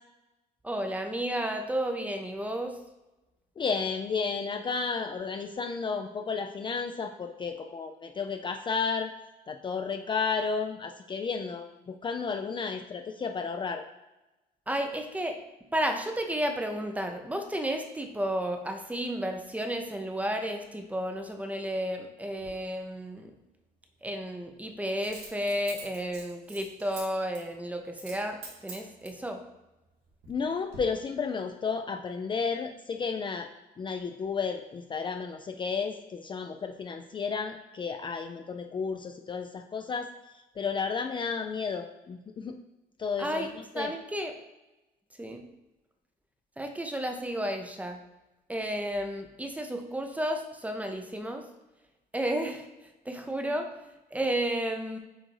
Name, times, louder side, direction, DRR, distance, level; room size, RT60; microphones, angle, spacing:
voice 1, 0.6-2.7 14.7-15.4 15.7-23.3 24.0-29.4 43.2-44.3 45.2-45.5 46.6-48.0 48.5-51.4 52.1-52.7 53.1-53.7 54.1-55.0, equal, 10° right, 5 dB, 0.6 m, -32 dB
voice 2, 3.6-9.1 9.5-13.8 30.3-33.5 33.8-40.1 40.6-42.6 43.0-43.9, left 5 dB, 30° left, 5 dB, 0.4 m, -32 dB
Coin (dropping), 22.4-22.5 25.0-27.0 27.3-27.5 27.9-28.2 28.4-29.2 29.9-30.4 30.7-30.8, right 4 dB, 80° right, 2.1 m, -45 dB
7.7 x 2.6 x 4.7 m, 1.0 s
cardioid pair, 110°, 17 cm